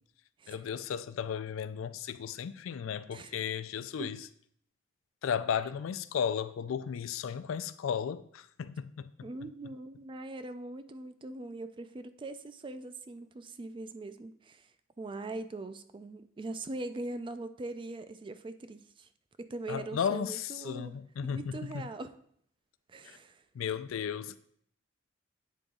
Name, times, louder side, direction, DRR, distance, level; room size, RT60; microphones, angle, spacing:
voice 1, 0.5-4.3 5.2-9.3 19.7-21.9 23.0-23.2 23.5-24.4, left 7 dB, 85° left, 0.4 m, -35 dB
voice 2, 9.2-19.1 19.4-20.9 21.2-22.1 22.9-23.4, right 2 dB, 25° right, 0.3 m, -41 dB
8.4 x 3.9 x 3.7 m
head